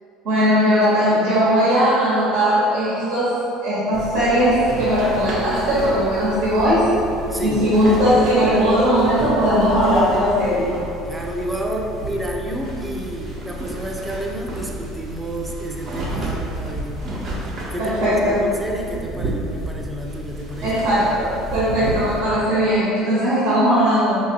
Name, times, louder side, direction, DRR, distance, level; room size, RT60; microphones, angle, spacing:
voice 1, 0.2-3.3 3.6-6.9 7.4-10.7 17.8-18.4 20.6-24.2, equal, 80° right, -10 dB, 1.2 m, -18 dB
sound 1, 3.9-22.2, right 1 dB, 55° right, 0.9 m, -31 dB
voice 2, 7.3-7.7 11.1-17.0 17.7-20.8, right 1 dB, 10° right, 0 dB, 0.5 m, -30 dB
4.0 x 2.8 x 2.8 m, 2.8 s
hypercardioid pair, 75°, 0 cm